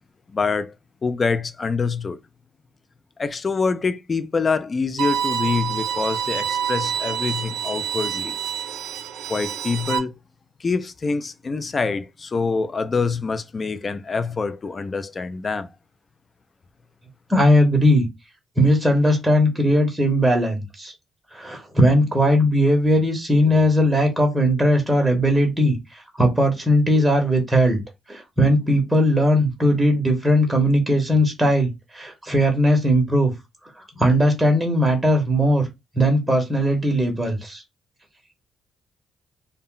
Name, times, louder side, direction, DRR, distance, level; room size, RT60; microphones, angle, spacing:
voice 1, 0.3-0.7 1.0-2.2 3.2-8.4 9.3-10.1 10.6-15.7, left 4 dB, 35° left, 0.3 m, -25 dB
Bowed string instrument, 5.0-10.0, right 8 dB, 80° right, 0.4 m, -27 dB
voice 2, 17.3-18.0 18.6-20.9 21.3-27.8 28.1-33.3 34.0-35.6 35.9-37.6, equal, 10° right, 0.9 m, -19 dB
2.2 x 2.0 x 3.7 m
cardioid pair, 90°, 0 cm